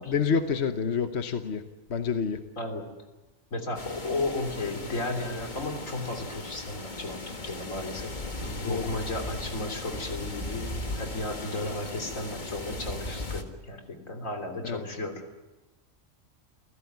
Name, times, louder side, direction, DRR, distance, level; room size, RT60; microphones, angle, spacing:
voice 1, 0.1-1.6 1.9-2.4 8.6-8.8 14.6-14.8, left 6 dB, 60° left, 7 dB, 1.3 m, -28 dB
voice 2, 2.6-2.9 3.5-15.2, left 2 dB, 85° left, 4 dB, 3.7 m, -34 dB
sound 1, 3.7-13.4, left 2 dB, 35° left, 2.0 m, -37 dB
29.0 x 15.5 x 9.5 m, 1.1 s
omnidirectional pair, 1.3 m